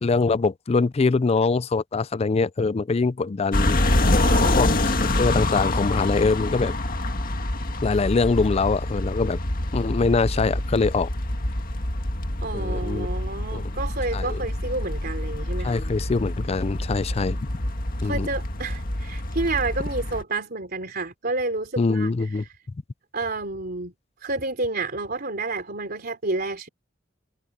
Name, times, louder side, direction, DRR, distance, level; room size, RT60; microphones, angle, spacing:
voice 1, 0.0-3.8 4.6-6.7 7.8-9.4 9.7-11.1 12.5-13.1 13.5-13.6 14.1-14.4 15.6-17.4 18.0-18.3 21.8-22.4, left 4 dB, 30° left, 0.4 m, -23 dB
sound 1, 3.5-20.2, left 1 dB, 45° left, 1.9 m, -26 dB
voice 2, 4.1-4.6 12.4-15.8 18.0-22.1 23.1-23.9 24.2-26.7, right 3 dB, 50° right, 3.5 m, -29 dB
head